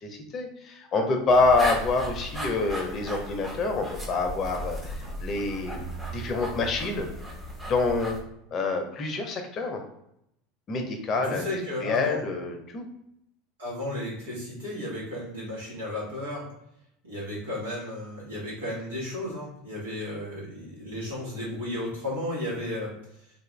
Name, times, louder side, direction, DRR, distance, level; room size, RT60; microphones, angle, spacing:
voice 1, 0.0-7.1 7.7-8.2 8.5-9.8 10.7-11.5 11.8-12.9, left 3 dB, 40° left, 4 dB, 0.6 m, -27 dB
sound 1, 1.3-8.2, equal, 10° right, 0.8 m, -36 dB
voice 2, 11.1-12.2 13.6-16.4 17.0-22.9, left 1 dB, 85° right, -6 dB, 1.4 m, -34 dB
2.6 x 2.4 x 3.2 m, 0.78 s
hypercardioid pair, 85°, 0 cm